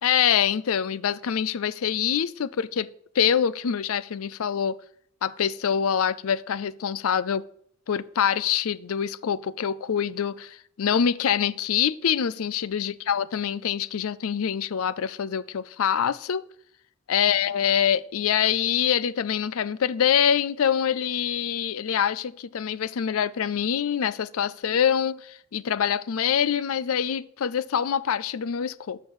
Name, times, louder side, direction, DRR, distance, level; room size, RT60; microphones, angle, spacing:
voice 1, 0.0-2.9 3.1-4.8 5.2-7.4 7.9-16.4 17.1-29.0, left 8 dB, 75° left, 0.4 m, -25 dB
12.5 x 6.4 x 4.8 m
head